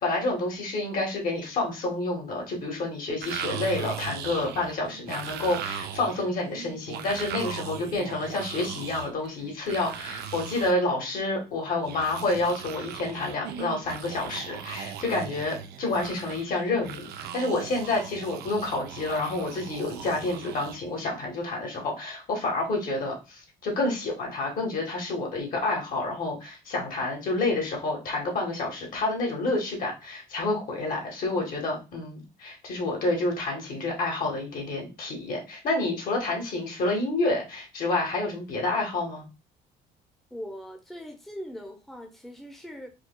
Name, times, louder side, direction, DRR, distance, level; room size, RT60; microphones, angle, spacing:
voice 1, 0.0-39.3, left 2 dB, 55° left, 1.4 m, -29 dB
sound 1, 3.2-10.7 11.8-21.0, right 9 dB, 75° right, 0.5 m, -39 dB
voice 2, 40.3-42.9, equal, ahead, 0.7 m, -40 dB
4.6 x 2.3 x 2.2 m
cardioid pair, 110°, 17 cm